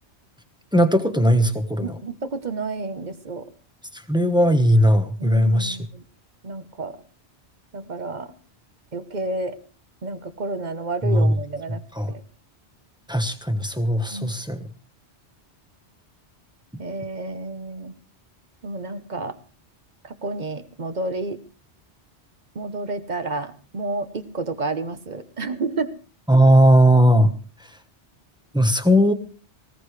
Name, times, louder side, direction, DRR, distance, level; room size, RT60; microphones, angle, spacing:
voice 1, 0.7-2.0 3.9-5.8 11.0-11.3 11.9-12.1 13.1-14.7 26.3-27.3 28.5-29.1, equal, 5° right, 7 dB, 1.1 m, -18 dB
voice 2, 1.8-3.4 5.2-6.0 6.4-7.0 7.7-8.3 8.9-9.6 10.0-11.8 12.1-12.2 14.1-14.3 16.8-17.9 18.6-19.4 20.0-21.4 22.5-25.9, right 3 dB, 40° right, 10 dB, 1.1 m, -30 dB
19.0 x 17.5 x 3.3 m, 0.38 s
omnidirectional pair, 1.2 m